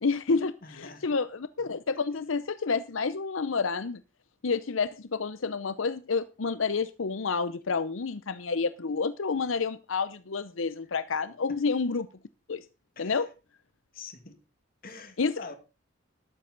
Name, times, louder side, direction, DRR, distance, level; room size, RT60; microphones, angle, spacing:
voice 1, 0.0-4.0 4.4-12.1 12.5-12.6 13.0-13.3 15.2-15.4, left 4 dB, 80° left, 0.7 m, -29 dB
voice 2, 0.6-1.1 13.0-13.2 13.9-14.4 14.8-15.5, left 4 dB, 45° left, 2.4 m, -45 dB
13.0 x 13.0 x 4.0 m
head